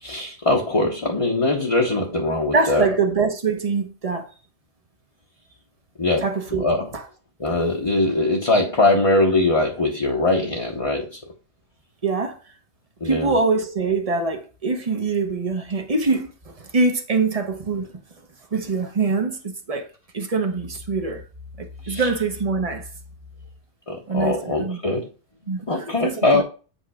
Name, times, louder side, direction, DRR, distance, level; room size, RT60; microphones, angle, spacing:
voice 1, 0.0-2.9 6.0-6.3 6.6-6.9 7.4-11.2 13.0-13.4 21.9-22.0 23.9-25.1 25.7-26.4, left 2 dB, 30° left, 1.1 m, -21 dB
voice 2, 2.5-4.3 6.2-6.6 6.9-7.0 12.0-12.4 13.0-17.9 18.5-19.9 20.1-21.2 21.6-22.9 24.1-24.8 25.5-26.4, right 4 dB, 35° right, 1.1 m, -24 dB
8.2 x 3.5 x 4.9 m
omnidirectional pair, 1.2 m